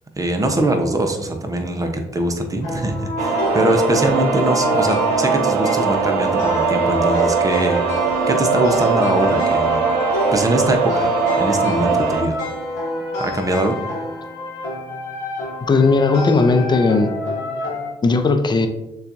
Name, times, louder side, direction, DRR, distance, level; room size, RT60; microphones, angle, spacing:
voice 1, 0.2-9.8 10.3-12.4 13.2-13.8, right 1 dB, 25° right, 4 dB, 0.8 m, -22 dB
sound 1, 2.6-17.9, left 2 dB, 90° left, 0.9 m, -28 dB
sound 2, 3.2-12.2, right 5 dB, 85° right, 0.5 m, -20 dB
voice 2, 15.6-17.1 18.0-18.7, left 3 dB, 35° left, 7 dB, 0.6 m, -16 dB
6.6 x 2.4 x 2.6 m, 0.95 s
hypercardioid pair, 50°, 13 cm